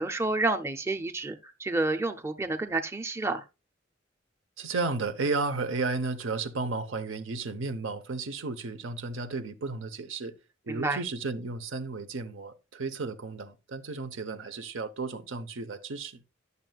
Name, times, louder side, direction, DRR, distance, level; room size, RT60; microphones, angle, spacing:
voice 1, 0.0-3.4 10.7-11.0, right 2 dB, 15° right, 0.5 m, -29 dB
voice 2, 4.6-10.3 10.7-16.2, right 3 dB, 85° right, 0.9 m, -33 dB
11.0 x 6.6 x 2.3 m
head